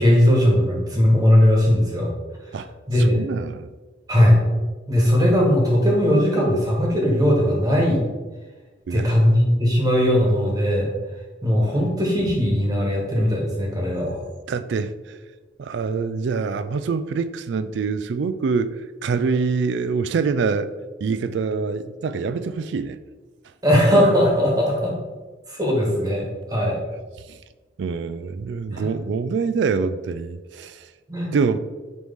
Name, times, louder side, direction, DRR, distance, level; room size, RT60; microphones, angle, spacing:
voice 1, 0.0-2.1 2.9-3.3 4.1-4.4 4.9-8.0 8.9-10.9 11.4-14.2 23.6-24.9 25.5-26.8 28.7-28.9 31.1-31.3, equal, 20° right, -1 dB, 1.3 m, -19 dB
voice 2, 3.0-3.7 8.9-9.2 14.5-15.2 15.6-20.7 21.0-23.0 27.3-27.4 27.8-30.9 31.3-31.6, right 5 dB, 70° right, 12 dB, 0.3 m, -25 dB
9.3 x 3.2 x 3.5 m, 1.3 s
head